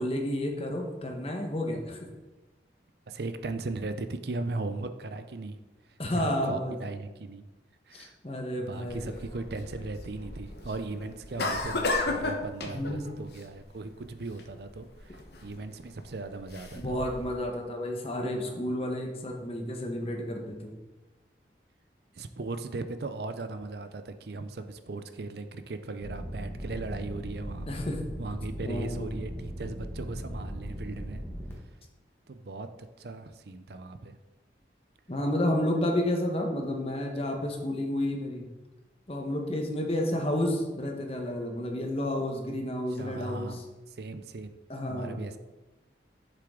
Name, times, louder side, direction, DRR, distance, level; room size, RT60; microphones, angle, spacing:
voice 1, 0.0-2.1 6.0-6.8 7.9-9.1 12.6-13.1 16.7-20.7 27.7-28.1 28.6-29.2 35.1-38.5 39.1-43.6 44.7-45.2, left 1 dB, 30° left, 2 dB, 1.2 m, -31 dB
voice 2, 3.1-5.6 5.9-7.5 7.9-8.2 8.6-17.0 22.1-27.8 28.2-31.2 32.3-32.7 33.0-34.2 43.0-43.6 43.9-44.6 44.8-45.4, right 3 dB, 60° right, 10 dB, 0.5 m, -38 dB
sound 1, 8.9-17.4, left 2 dB, 60° left, 1.1 m, -35 dB
sound 2, 26.0-31.5, equal, 15° left, 1.5 m, -38 dB
8.1 x 6.8 x 3.7 m, 1.1 s
head